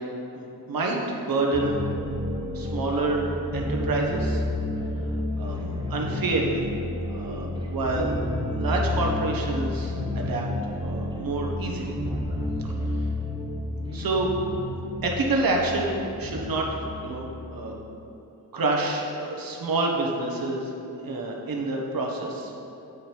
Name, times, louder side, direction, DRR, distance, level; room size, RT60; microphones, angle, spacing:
voice 1, 0.4-1.0 1.3-1.8 2.5-4.4 5.4-6.7 7.1-8.2 8.5-10.4 10.8-12.0 13.9-14.3 15.0-17.7 18.5-20.7 21.0-22.5, right 2 dB, 65° right, -1 dB, 1.2 m, -28 dB
sound 1, 1.5-17.8, left 1 dB, 10° right, 0.8 m, -31 dB
8.7 x 5.0 x 4.5 m, 2.9 s
wide cardioid pair, 135°, 37 cm